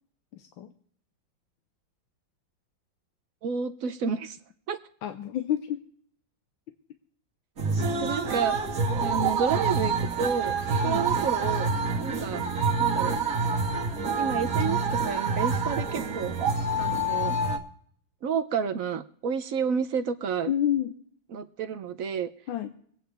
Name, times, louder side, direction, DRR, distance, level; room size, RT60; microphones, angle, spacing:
voice 1, 0.3-0.7 5.0-5.8 10.8-11.0 20.5-21.0 22.5-22.7, left 10 dB, 90° left, 7 dB, 1.5 m, -29 dB
voice 2, 3.4-4.4 4.7-4.8 8.0-8.6 9.0-10.5 10.8-11.7 12.0-12.4 12.8-13.2 14.2-16.3 16.8-17.4 18.2-20.5 21.3-22.3, right 6 dB, 65° right, 8 dB, 0.8 m, -30 dB
sound 1, 7.6-17.6, right 4 dB, 50° right, 1.8 m, -27 dB
24.0 x 9.1 x 3.4 m, 0.62 s
omnidirectional pair, 2.1 m